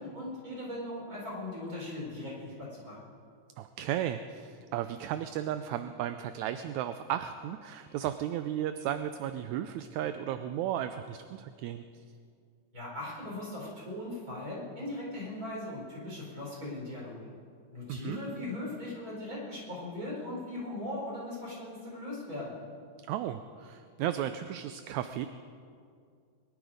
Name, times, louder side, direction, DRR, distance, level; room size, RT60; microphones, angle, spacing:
voice 1, 0.0-3.0 12.7-17.3 17.7-22.6, left 1 dB, 25° right, -5 dB, 5.0 m, -39 dB
voice 2, 3.6-11.8 17.9-18.2 23.1-25.3, right 11 dB, 80° right, 10 dB, 1.8 m, -34 dB
22.5 x 11.5 x 5.0 m, 2.3 s
omnidirectional pair, 3.6 m